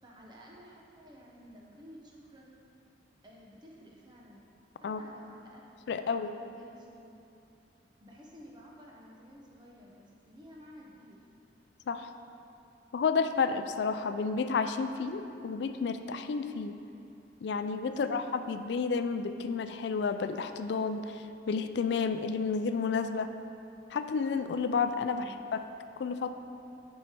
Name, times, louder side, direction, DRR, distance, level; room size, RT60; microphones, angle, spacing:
voice 1, 0.0-2.6 3.2-4.4 4.8-7.2 8.0-11.2 17.9-18.2 25.1-25.4, equal, 25° right, -3 dB, 1.0 m, -53 dB
voice 2, 5.9-6.3 11.9-12.1 12.9-16.8 17.4-23.3 23.9-25.2 25.5-25.6 26.0-26.4, left 5 dB, 65° left, 10 dB, 0.3 m, -31 dB
7.9 x 5.4 x 4.4 m, 2.8 s
head